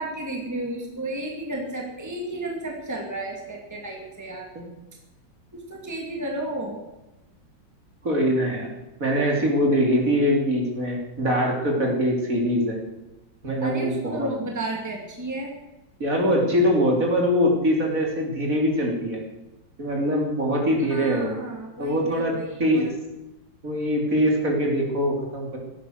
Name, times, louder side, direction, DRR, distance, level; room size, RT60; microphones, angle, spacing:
voice 1, 0.0-4.5 5.5-6.8 13.6-15.5 20.9-22.9, right 1 dB, 10° right, 0 dB, 2.5 m, -32 dB
voice 2, 8.0-8.7 9.0-12.8 13.4-14.3 16.0-19.2 19.8-21.4 21.8-22.3 22.6-22.9 23.6-25.6, equal, 45° right, 0 dB, 3.7 m, -23 dB
17.0 x 11.5 x 6.5 m, 0.99 s
omnidirectional pair, 2.0 m